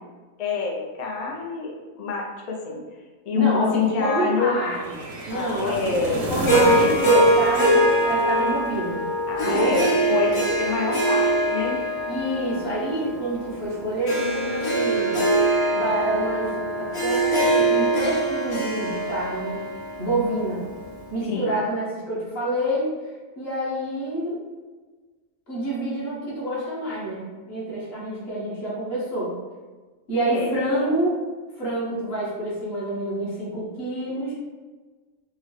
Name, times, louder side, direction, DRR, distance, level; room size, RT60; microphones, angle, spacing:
voice 1, 0.4-1.7 2.0-2.8 3.3-4.6 5.3-6.3 9.3-11.8 21.2-21.6 30.3-30.6, left 5 dB, 90° left, -1 dB, 0.3 m, -26 dB
voice 2, 3.3-4.9 5.2-6.0 6.3-9.0 9.4-9.9 12.1-15.2 15.7-19.7 20.0-20.6 21.1-22.9 23.4-24.4 25.5-29.3 30.1-31.2 31.6-34.3, right 1 dB, 50° left, -6 dB, 1.3 m, -27 dB
sound 1, 4.7-9.0, right 1 dB, 80° right, 1.0 m, -32 dB
Harp, 6.5-20.8, right 1 dB, 35° left, 0.5 m, -23 dB
3.8 x 2.1 x 3.1 m, 1.3 s
omnidirectional pair, 1.4 m